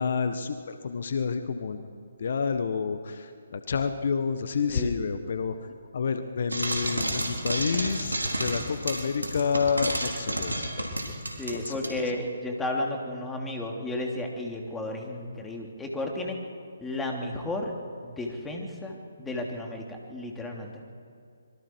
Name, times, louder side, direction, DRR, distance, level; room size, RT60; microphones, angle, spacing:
voice 1, 0.0-1.9 2.2-5.5 5.9-10.9 11.5-12.1, left 5 dB, 55° left, 9 dB, 1.3 m, -29 dB
Frying (food), 6.5-11.9, right 1 dB, 90° right, 4.1 m, -30 dB
voice 2, 11.4-16.4 16.8-17.7 18.0-19.8 20.1-20.8, left 2 dB, 10° left, 0 dB, 3.0 m, -33 dB
26.0 x 23.5 x 4.7 m, 2.4 s
figure-of-eight pair, 140°, 0 cm